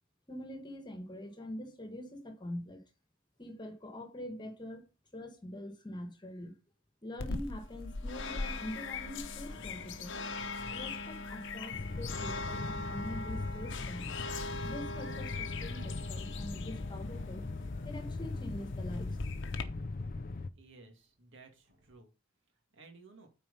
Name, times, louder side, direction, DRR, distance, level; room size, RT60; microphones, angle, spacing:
voice 1, 0.3-2.8 3.4-4.9 5.1-6.5 7.0-10.1 10.7-14.1 14.6-17.5 17.7-19.2, left 1 dB, 20° left, 1.5 m, -44 dB
sound 1, 7.1-7.3 8.6-17.2 17.5-17.6 17.8-21.1 21.6-21.9, equal, 45° right, 5.0 m, -58 dB
sound 2, 7.2-19.6, left 3 dB, 65° left, 0.9 m, -41 dB
sound 3, 11.7-20.5, left 3 dB, 45° left, 0.5 m, -39 dB
voice 2, 20.6-22.1 22.7-23.3, right 3 dB, 65° right, 2.2 m, -56 dB
9.0 x 4.6 x 5.5 m
head